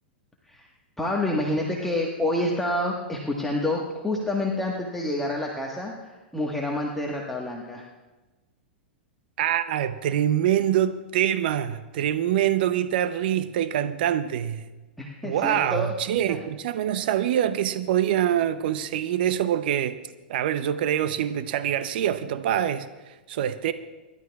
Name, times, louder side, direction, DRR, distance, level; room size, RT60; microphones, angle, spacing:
voice 1, 1.0-7.8 15.0-15.9 16.3-16.4, left 1 dB, 5° left, 1.4 m, -28 dB
voice 2, 9.4-14.7 15.2-20.0 20.3-23.7, right 10 dB, 65° right, 0.7 m, -25 dB
26.0 x 12.0 x 2.4 m
hypercardioid pair, 110°, 6 cm